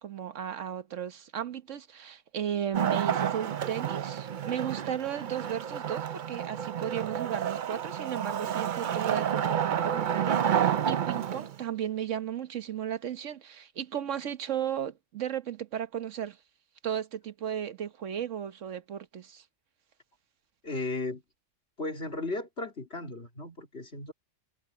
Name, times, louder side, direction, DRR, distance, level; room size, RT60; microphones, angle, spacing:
voice 1, 0.0-16.4 16.8-19.4, right 9 dB, 80° right, 1.4 m, -35 dB
Wood, 2.7-11.6, right 9 dB, 50° right, 0.7 m, -30 dB
voice 2, 20.6-21.2 21.8-24.1, left 2 dB, 55° left, 3.7 m, -35 dB
omnidirectional pair, 1.3 m